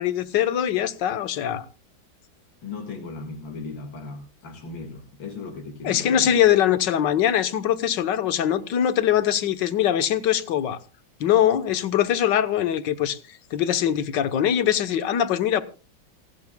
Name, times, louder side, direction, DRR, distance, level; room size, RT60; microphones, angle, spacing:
voice 1, 0.0-1.7 5.8-10.8 11.2-15.6, left 10 dB, 70° left, 1.6 m, -22 dB
voice 2, 2.6-6.3 6.7-6.8, left 3 dB, 90° left, 2.6 m, -37 dB
27.5 x 10.5 x 2.2 m
omnidirectional pair, 2.0 m